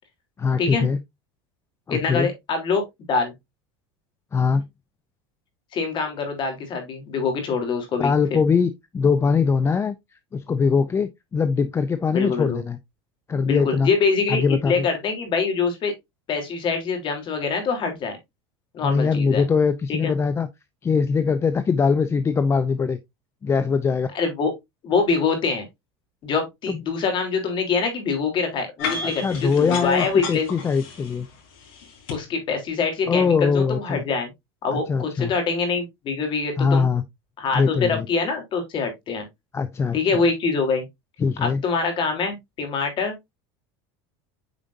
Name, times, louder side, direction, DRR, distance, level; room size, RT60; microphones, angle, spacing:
voice 1, 0.4-1.0 1.9-2.3 4.3-4.6 8.0-9.9 10.3-12.8 13.3-13.9 14.3-14.9 18.8-20.5 20.8-23.0 23.4-24.1 26.7-26.8 29.0-31.3 33.1-34.0 34.7-35.3 36.6-37.0 37.5-38.1 39.5-40.0 41.2-41.6, left 5 dB, 20° left, 0.5 m, -22 dB
voice 2, 1.9-3.3 5.7-8.4 12.1-12.6 13.4-15.9 16.3-18.2 18.7-19.4 19.9-20.1 24.1-24.5 24.8-25.7 26.2-30.5 32.1-34.3 34.6-36.8 37.4-39.2 39.9-40.8 41.4-43.1, left 4 dB, 40° left, 3.2 m, -24 dB
sound 1, 28.8-32.2, left 5 dB, 80° left, 4.6 m, -33 dB
9.0 x 5.0 x 2.6 m
supercardioid pair, 120°, 12 cm